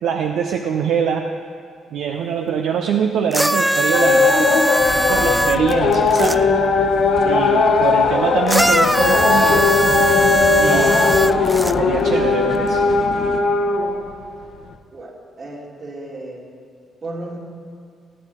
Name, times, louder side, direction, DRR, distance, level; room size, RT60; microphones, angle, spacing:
voice 1, 0.0-1.3 1.9-6.5 7.2-9.7 10.6-11.1 11.8-12.8, right 7 dB, 75° right, 4 dB, 0.6 m, -23 dB
sound 1, 3.3-6.4 8.5-11.7 12.7-12.8, equal, 5° right, 0.3 m, -20 dB
sound 2, 3.9-14.2, left 4 dB, 70° left, 1.1 m, -18 dB
sound 3, 4.8-13.4, left 4 dB, 55° left, 1.5 m, -30 dB
voice 2, 14.9-16.4 17.0-17.4, right 2 dB, 50° right, -2 dB, 3.3 m, -34 dB
20.0 x 9.0 x 4.6 m, 2.2 s
hypercardioid pair, 50°, 0 cm